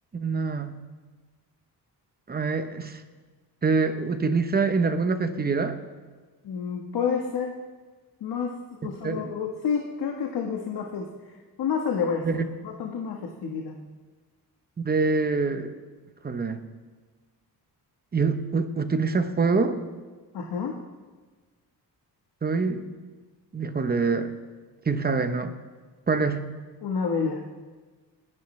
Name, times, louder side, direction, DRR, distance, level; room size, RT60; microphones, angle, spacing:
voice 1, 0.1-0.8 2.3-3.0 3.6-5.8 9.0-9.3 12.2-12.4 14.8-15.8 16.2-16.6 18.1-19.8 22.4-22.9 23.5-24.3 24.9-25.5 26.1-26.5, right 4 dB, 25° right, 8 dB, 0.8 m, -25 dB
voice 2, 6.4-7.5 8.2-13.7 20.3-20.8 26.8-27.4, left 6 dB, 70° left, 1 dB, 1.3 m, -29 dB
30.0 x 10.5 x 3.2 m, 1.4 s
wide cardioid pair, 165°, 40 cm